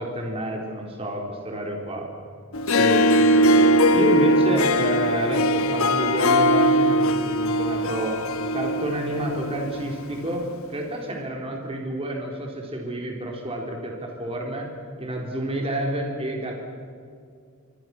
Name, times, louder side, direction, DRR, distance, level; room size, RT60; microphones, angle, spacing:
voice 1, 0.0-2.1 2.7-8.2 8.5-10.4 10.7-14.7 15.0-16.5, right 1 dB, 30° right, 0 dB, 3.9 m, -29 dB
Harp, 2.5-10.0, equal, 75° left, 1.1 m, -20 dB
26.5 x 25.0 x 6.1 m, 2.3 s
head